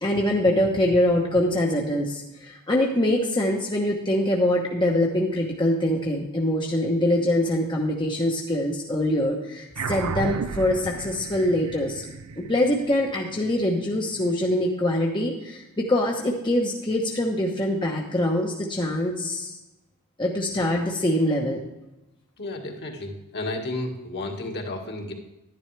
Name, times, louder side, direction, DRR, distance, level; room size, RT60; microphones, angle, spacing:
voice 1, 0.0-12.0 12.4-19.5 20.2-21.6, left 1 dB, 20° left, -2 dB, 1.0 m, -24 dB
sound 1, 9.8-14.5, right 5 dB, 75° right, 0.5 m, -34 dB
voice 2, 22.4-25.1, left 2 dB, 50° left, 1 dB, 1.7 m, -32 dB
11.0 x 10.5 x 3.3 m, 0.97 s
head